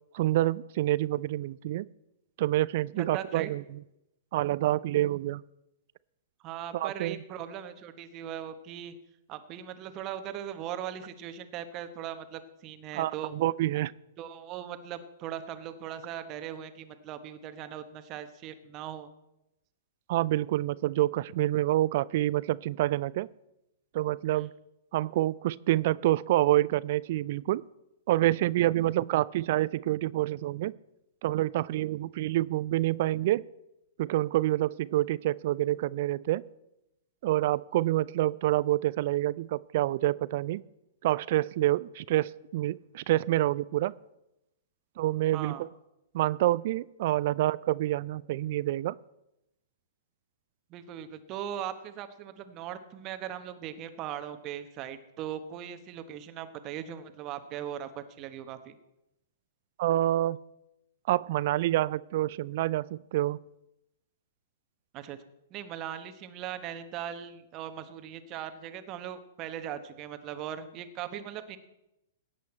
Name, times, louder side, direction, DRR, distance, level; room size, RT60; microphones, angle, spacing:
voice 1, 0.1-1.9 2.4-3.6 4.3-5.4 6.7-7.2 12.9-13.9 20.1-23.3 23.9-24.5 24.9-27.6 28.1-30.7 31.2-33.4 34.0-36.4 37.2-40.6 41.0-43.9 45.0-45.7 46.1-48.9 59.8-60.4 61.1-63.4, right 15 dB, 50° right, 21 dB, 0.3 m, -27 dB
voice 2, 2.9-3.5 6.4-8.9 9.3-13.3 14.2-19.1 24.3-24.5 45.3-45.6 50.7-58.8 64.9-65.2 65.5-71.6, right 10 dB, 35° right, 10 dB, 1.1 m, -39 dB
17.5 x 8.2 x 4.4 m, 0.88 s
figure-of-eight pair, 105°, 0 cm